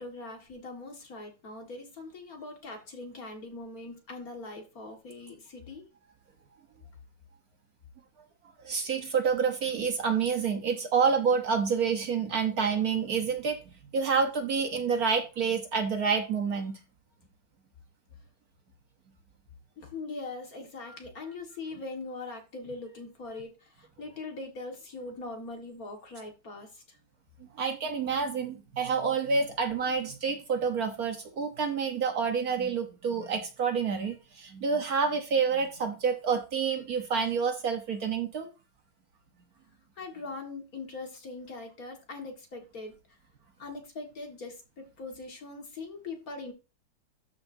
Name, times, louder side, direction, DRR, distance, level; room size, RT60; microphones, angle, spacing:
voice 1, 0.0-5.8 19.8-27.0 40.0-43.0 43.6-46.5, left 3 dB, 50° left, 2.2 m, -41 dB
voice 2, 8.6-16.8 20.9-21.0 27.4-38.5, right 5 dB, 55° right, 1.3 m, -28 dB
13.0 x 5.8 x 2.7 m
omnidirectional pair, 2.1 m